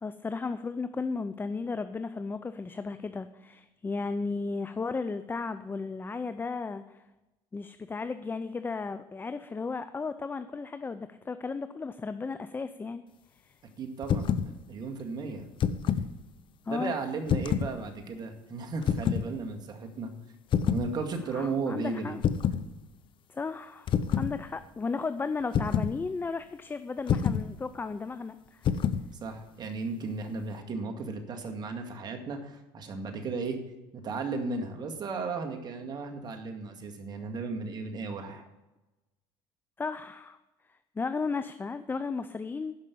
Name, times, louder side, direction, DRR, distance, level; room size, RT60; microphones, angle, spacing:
voice 1, 0.0-7.0 7.5-13.0 13.4-13.5 16.7-16.9 21.3-22.2 23.3-28.6 39.8-40.4 41.0-42.8, left 4 dB, 20° left, 11 dB, 0.5 m, -34 dB
voice 2, 13.8-15.5 16.7-20.1 20.7-22.2 29.1-33.6 33.9-38.5, right 4 dB, 40° right, 4 dB, 2.0 m, -35 dB
sound 1, 14.0-14.5 15.4-16.1 17.3-17.7 18.8-19.3 20.5-20.9 22.2-22.7 23.9-24.3 25.5-26.0 27.1-27.5 28.6-29.1, left 8 dB, 45° left, 0.8 m, -27 dB
11.5 x 5.5 x 8.5 m, 1.0 s
supercardioid pair, 105°, 11 cm